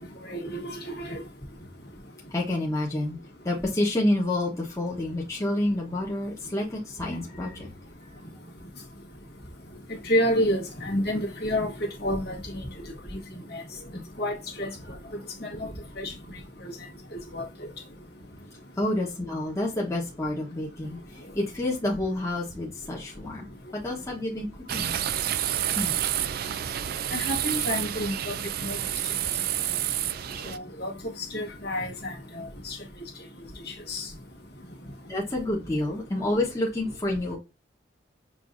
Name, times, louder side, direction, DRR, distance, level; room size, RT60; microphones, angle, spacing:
voice 1, 0.2-1.2 10.0-12.6 13.1-13.2 13.5-13.6 14.2-14.7 15.4-15.7 16.0-16.1 16.6-16.7 17.3-17.4 27.1-28.3 28.6-28.8 30.4-30.9 31.3-32.8 33.7-34.1, equal, 55° left, 1.6 m, -29 dB
voice 2, 2.3-3.2 3.4-7.7 13.9-14.0 18.8-24.5 24.7-25.0 25.7-25.9 35.1-37.4, left 1 dB, 15° left, 1.2 m, -29 dB
sound 1, 24.7-30.6, right 11 dB, 50° right, 0.3 m, -29 dB
6.7 x 2.7 x 2.6 m
head